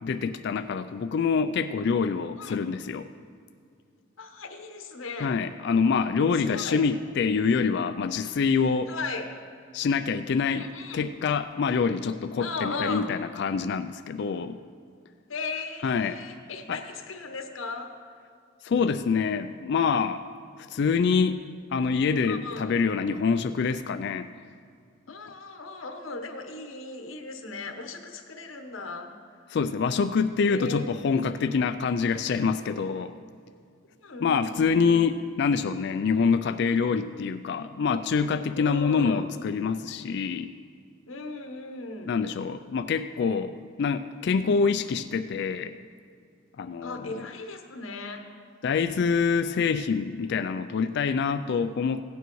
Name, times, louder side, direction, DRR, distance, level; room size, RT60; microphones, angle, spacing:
voice 1, 0.0-3.0 5.2-8.9 9.7-10.7 10.9-14.6 15.8-16.2 16.7-16.8 18.6-20.2 20.6-21.4 21.7-24.3 29.5-33.1 34.2-40.5 42.1-45.8 46.6-47.3 48.6-52.0, left 5 dB, 60° left, 11 dB, 0.3 m, -26 dB
voice 2, 4.2-5.4 6.5-6.8 8.9-9.3 10.5-11.1 12.4-13.1 15.3-17.9 22.3-22.8 25.1-29.1 30.5-30.8 34.0-35.0 38.5-39.3 41.1-42.2 44.4-44.6 46.8-48.2, left 3 dB, 80° left, 4 dB, 1.0 m, -37 dB
16.5 x 9.3 x 3.1 m, 2.2 s
head